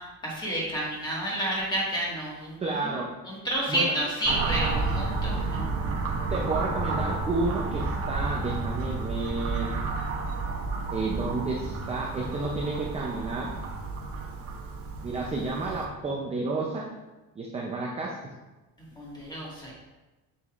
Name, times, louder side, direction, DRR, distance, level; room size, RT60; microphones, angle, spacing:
voice 1, 0.2-2.6 2.8-3.0 3.3-5.7 18.9-19.7, right 1 dB, 10° left, -5 dB, 1.7 m, -30 dB
voice 2, 2.6-3.1 3.7-3.9 6.3-9.8 10.9-13.5 15.0-16.8 17.4-18.2, right 3 dB, 20° right, -2 dB, 0.5 m, -31 dB
sound 1, 4.2-15.8, right 3 dB, 40° right, 0.9 m, -31 dB
6.9 x 6.8 x 2.5 m, 1.1 s
cardioid pair, 165°, 36 cm